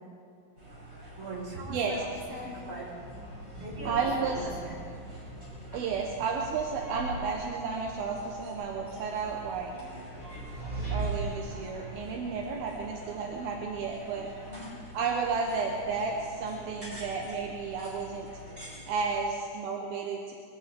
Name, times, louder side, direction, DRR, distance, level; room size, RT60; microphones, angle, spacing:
sound 1, 0.6-19.2, equal, 20° right, 4.7 m, -46 dB
voice 1, 1.2-2.9 3.6-4.7 14.5-14.7, right 2 dB, 45° right, -5 dB, 6.0 m, -40 dB
voice 2, 1.7-2.0 3.8-4.4 5.7-9.7 10.9-14.3 14.9-18.3 18.9-20.3, right 5 dB, 85° right, 0 dB, 3.0 m, -32 dB
sound 2, 1.9-13.6, right 2 dB, 20° left, 4.9 m, -42 dB
22.5 x 16.5 x 3.7 m, 2.4 s
omnidirectional pair, 4.2 m